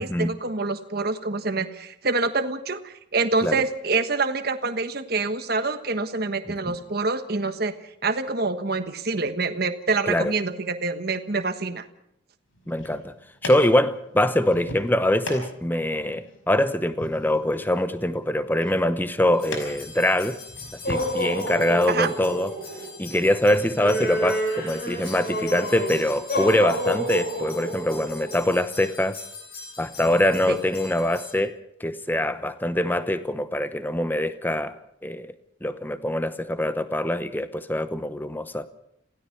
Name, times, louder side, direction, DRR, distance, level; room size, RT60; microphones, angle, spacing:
voice 1, 0.0-7.7 8.0-11.9 21.9-22.1 30.5-30.6, right 3 dB, 50° right, 1.3 m, -26 dB
sound 1, 12.5-21.1, left 1 dB, 85° left, 5.3 m, -40 dB
voice 2, 12.7-13.1 13.4-20.4 20.9-22.5 23.0-29.2 29.8-34.8 35.0-35.3 35.6-38.7, left 1 dB, 10° left, 0.9 m, -24 dB
sound 2, 19.4-31.3, equal, 50° left, 7.2 m, -31 dB
27.5 x 16.5 x 5.9 m
head